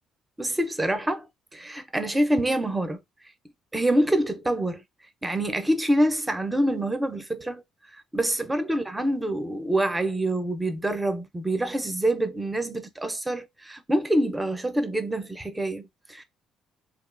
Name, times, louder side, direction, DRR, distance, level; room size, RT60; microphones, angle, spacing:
voice 1, 0.4-1.3 1.5-3.0 3.7-4.8 5.2-7.6 7.9-16.2, right 1 dB, 10° right, 0.5 m, -26 dB
2.6 x 2.2 x 2.4 m
cardioid pair, 95°, 0 cm